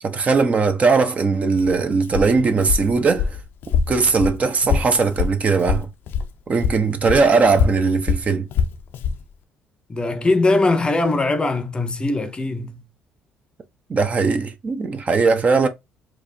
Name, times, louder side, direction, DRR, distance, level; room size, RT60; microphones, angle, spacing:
voice 1, 0.0-3.4 3.9-5.9 6.5-8.5 13.9-15.7, right 4 dB, 40° right, 0.7 m, -19 dB
Walk footsteps, 1.5-6.3 6.6-9.2, left 6 dB, 65° left, 0.5 m, -24 dB
voice 2, 9.9-12.8, left 2 dB, 25° left, 0.6 m, -21 dB
4.6 x 2.4 x 2.6 m
supercardioid pair, 85°, 4 cm